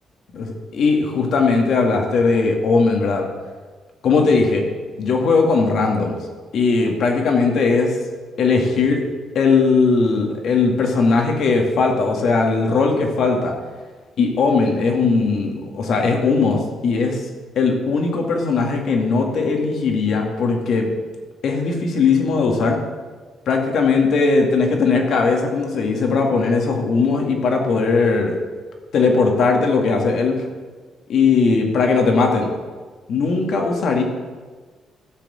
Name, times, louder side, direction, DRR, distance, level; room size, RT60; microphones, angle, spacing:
voice 1, 0.3-3.3 4.0-4.6 5.0-6.1 6.5-7.9 8.4-9.0 9.3-13.5 14.2-17.2 17.6-20.9 21.4-22.8 23.5-28.4 28.9-30.4 31.1-32.5 33.1-34.0, left 4 dB, 70° left, 2 dB, 2.1 m, -18 dB
13.5 x 5.1 x 7.7 m, 1.4 s
cardioid pair, 90°, 0 cm